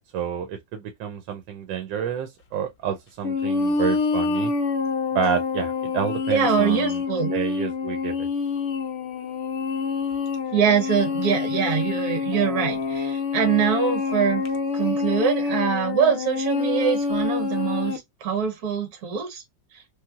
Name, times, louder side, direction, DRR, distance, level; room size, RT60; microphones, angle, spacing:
voice 1, 0.1-4.5 5.1-7.0 7.3-8.3, right 8 dB, 80° right, 1.3 m, -29 dB
sound 1, 3.2-18.0, left 4 dB, 85° left, 0.6 m, -26 dB
voice 2, 6.3-7.3 10.5-14.4 14.7-19.4, right 7 dB, 60° right, 1.4 m, -23 dB
3.2 x 2.9 x 2.3 m
omnidirectional pair, 2.0 m